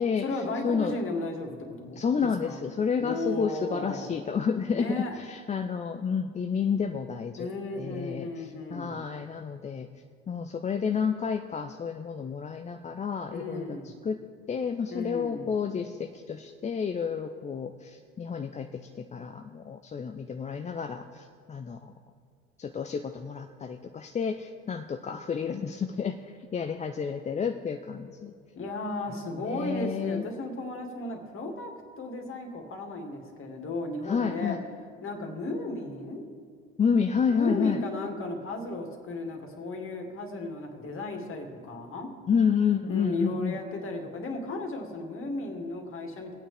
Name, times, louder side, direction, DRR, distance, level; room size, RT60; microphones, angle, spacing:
voice 1, 0.2-2.6 3.0-4.2 4.7-5.2 7.4-9.0 13.3-13.9 14.9-15.5 28.5-34.6 35.0-36.3 37.3-42.1 42.9-46.3, left 2 dB, 35° left, 3 dB, 2.3 m, -35 dB
voice 2, 2.0-7.5 7.8-9.9 10.3-14.2 14.5-21.9 22.6-28.3 29.5-30.3 34.0-34.6 36.8-37.8 42.3-43.6, left 6 dB, 20° left, 7 dB, 0.5 m, -30 dB
23.5 x 8.8 x 3.3 m, 2.1 s
hypercardioid pair, 65°, 36 cm